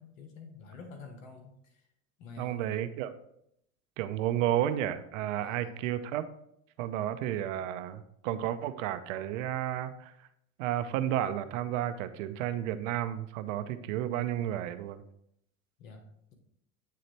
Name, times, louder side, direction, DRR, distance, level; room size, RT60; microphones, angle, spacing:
voice 1, 0.0-1.9 2.2-2.7 5.4-5.9 15.8-16.3, left 3 dB, 70° left, 4 dB, 1.4 m, -48 dB
voice 2, 2.4-3.1 4.0-6.2 6.8-10.1 10.6-15.0, right 12 dB, 65° right, 11 dB, 0.6 m, -32 dB
8.5 x 3.8 x 3.2 m, 0.74 s
hypercardioid pair, 100°, 41 cm